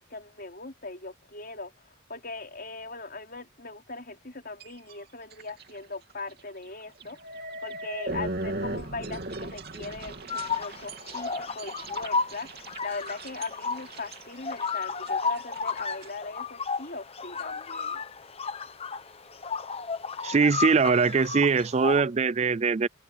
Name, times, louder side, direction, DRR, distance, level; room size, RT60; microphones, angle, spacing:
voice 1, 0.0-1.7 2.1-7.2 7.6-12.5 12.8-18.0, left 3 dB, 45° left, 4.2 m, -39 dB
sound 1, 4.6-4.9 5.3-5.7 6.1-6.2 7.0-16.1, right 2 dB, 50° right, 3.0 m, -38 dB
sound 2, 10.3-22.0, left 5 dB, 30° left, 0.9 m, -33 dB
voice 2, 20.2-22.9, right 5 dB, 35° right, 0.4 m, -22 dB
head